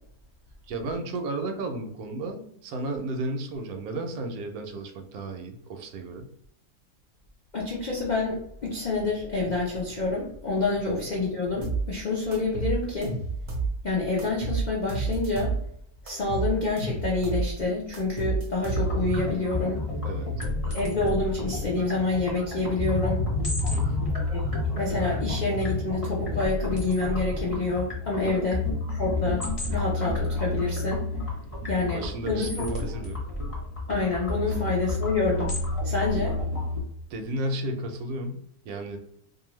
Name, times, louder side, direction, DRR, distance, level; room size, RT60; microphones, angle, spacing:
voice 1, 0.7-6.3 10.8-10.9 20.0-20.3 23.7-24.1 28.2-28.4 31.9-33.2 37.1-39.0, right 2 dB, 80° right, 5 dB, 1.0 m, -33 dB
voice 2, 7.5-13.2 13.8-15.5 16.0-19.8 20.6-23.2 24.3-28.6 28.9-31.0 31.7-32.7 33.9-35.6 35.8-36.4, left 3 dB, 70° left, -4 dB, 0.4 m, -28 dB
sound 1, 11.6-11.9 12.3-13.7 14.2-15.6 16.1-17.5 17.9-19.1, right 4 dB, 45° right, 0.6 m, -29 dB
sound 2, 18.7-36.8, left 2 dB, 25° left, 0.9 m, -30 dB
2.6 x 2.5 x 3.0 m, 0.70 s
omnidirectional pair, 1.6 m